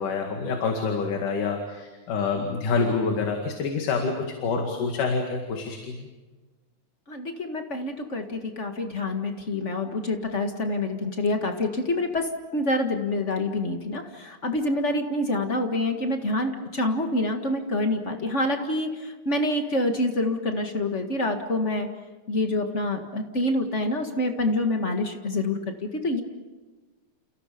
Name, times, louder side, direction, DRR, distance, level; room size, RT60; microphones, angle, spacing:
voice 1, 0.0-6.1, left 4 dB, 65° left, 3 dB, 3.6 m, -27 dB
voice 2, 7.1-21.9 22.3-26.2, left 1 dB, 35° left, 5 dB, 1.1 m, -27 dB
30.0 x 29.5 x 5.2 m, 1.2 s
omnidirectional pair, 4.1 m